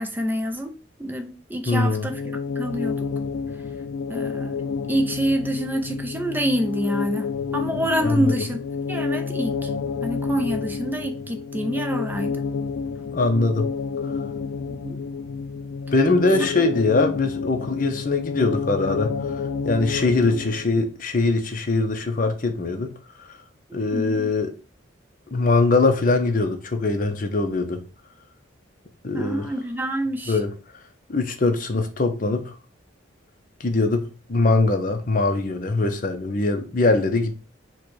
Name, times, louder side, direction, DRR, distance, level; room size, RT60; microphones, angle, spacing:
voice 1, 0.0-2.2 2.6-3.0 4.1-7.3 7.5-8.6 8.9-9.7 10.0-12.4 14.7-15.0 23.9-24.3 29.1-30.4, right 1 dB, 10° right, 0.4 m, -27 dB
voice 2, 1.7-2.1 8.0-8.3 13.1-13.7 15.9-22.9 23.7-24.5 25.3-27.8 29.0-29.5 30.3-30.5 31.1-32.5 33.6-37.3, left 3 dB, 40° left, 0.6 m, -22 dB
sound 1, 2.0-20.9, left 5 dB, 75° left, 0.3 m, -29 dB
4.4 x 2.2 x 4.6 m
head